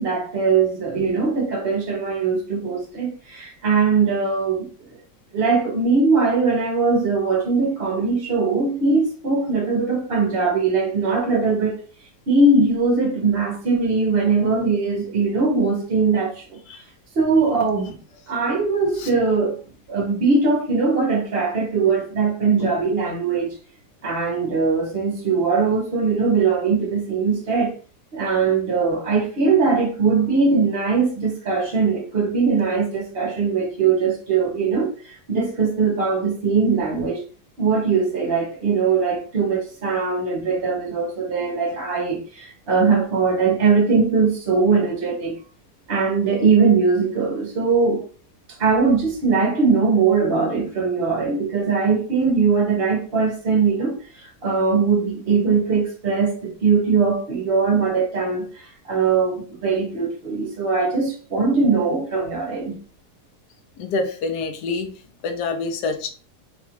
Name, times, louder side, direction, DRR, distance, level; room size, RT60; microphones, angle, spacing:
voice 1, 0.0-4.7 5.3-11.8 12.3-16.6 17.1-18.0 18.3-19.6 19.9-23.6 24.0-27.7 28.1-37.2 37.6-45.3 45.9-48.0 48.6-62.7, right 4 dB, 50° right, 0.8 m, -20 dB
voice 2, 63.8-64.9 65.2-66.1, left 3 dB, 80° left, 1.2 m, -26 dB
4.2 x 2.3 x 2.8 m
omnidirectional pair, 1.8 m